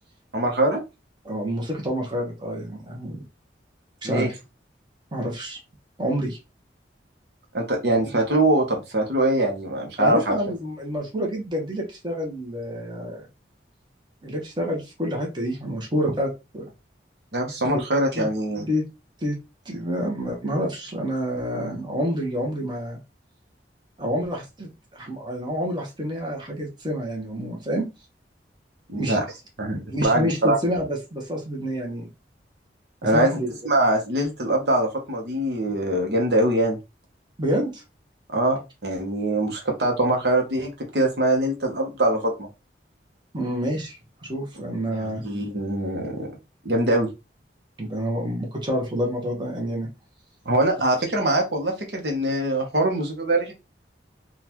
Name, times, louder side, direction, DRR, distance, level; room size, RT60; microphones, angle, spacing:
voice 1, 0.3-0.8 4.0-4.3 7.5-10.3 17.3-18.7 28.9-29.2 29.6-30.6 33.0-33.3 33.6-36.8 38.3-42.5 45.0-46.3 46.6-47.1 50.4-53.5, right 1 dB, 65° right, 2 dB, 0.9 m, -23 dB
voice 2, 1.2-3.2 4.0-4.4 5.1-5.6 6.0-6.4 10.0-13.3 14.2-16.6 17.6-17.8 18.1-18.3 18.7-18.8 19.2-19.4 19.6-23.0 24.0-27.9 29.0-29.2 29.9-32.1 33.1-33.5 37.4-37.8 43.3-45.2 47.8-49.9, equal, 25° right, 0 dB, 1.0 m, -28 dB
3.8 x 2.4 x 2.9 m, 0.25 s
head